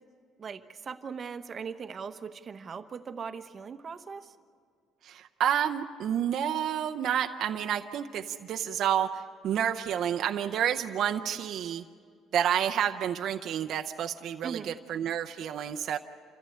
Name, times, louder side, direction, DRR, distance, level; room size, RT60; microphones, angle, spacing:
voice 1, 0.4-4.3 14.4-14.7, right 6 dB, 35° right, 9 dB, 1.0 m, -39 dB
voice 2, 5.0-11.8 12.3-16.0, right 9 dB, 60° right, 6 dB, 0.7 m, -29 dB
28.0 x 14.5 x 8.6 m, 2.2 s
cardioid pair, 135°, 0 cm